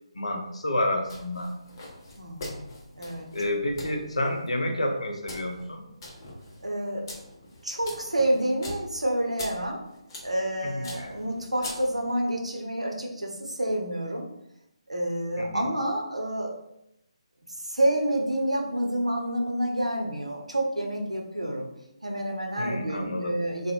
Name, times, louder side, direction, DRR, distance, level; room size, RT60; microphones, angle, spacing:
voice 1, 0.1-1.5 3.3-5.8 10.6-11.2 15.4-15.7 22.6-23.4, left 1 dB, 75° left, 3 dB, 0.5 m, -29 dB
sound 1, 1.0-12.2, left 1 dB, 35° left, 0.7 m, -43 dB
voice 2, 2.2-2.7 3.0-3.3 6.6-7.1 7.6-9.8 10.2-14.3 14.9-16.5 17.6-21.7 22.0-23.7, right 1 dB, 90° right, 1 dB, 0.6 m, -28 dB
2.5 x 2.1 x 2.9 m, 0.82 s
figure-of-eight pair, 145°, 3 cm